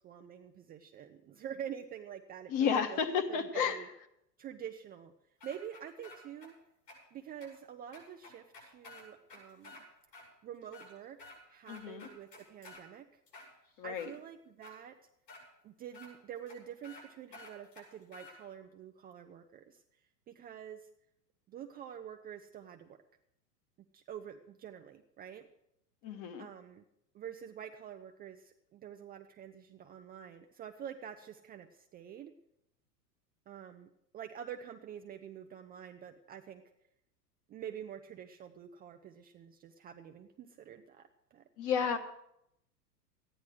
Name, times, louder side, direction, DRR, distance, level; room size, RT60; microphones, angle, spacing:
voice 1, 0.0-3.0 3.3-3.9 4.4-5.1 5.4-6.5 7.1-9.8 10.4-13.2 13.8-14.9 15.6-19.8 20.3-20.9 21.5-23.0 23.9-25.4 26.4-26.9 27.1-32.3 33.5-36.6 37.5-41.4 41.8-42.0, right 9 dB, 20° right, 5 dB, 0.5 m, -47 dB
voice 2, 2.5-3.8 11.7-12.1 13.8-14.1 26.0-26.5 41.6-42.0, left 7 dB, 40° left, 7 dB, 1.5 m, -32 dB
sound 1, 5.4-6.5 6.9-7.0 7.4-7.5 7.9-9.8 10.1-10.3 10.6-11.4 11.7-12.8 13.3-14.1 14.6-14.7 15.3-15.4 15.9-16.1 16.5-16.6 16.8-17.0 17.3-18.4, left 3 dB, 80° left, 6.5 m, -52 dB
13.5 x 10.0 x 6.2 m, 0.78 s
hypercardioid pair, 105°, 49 cm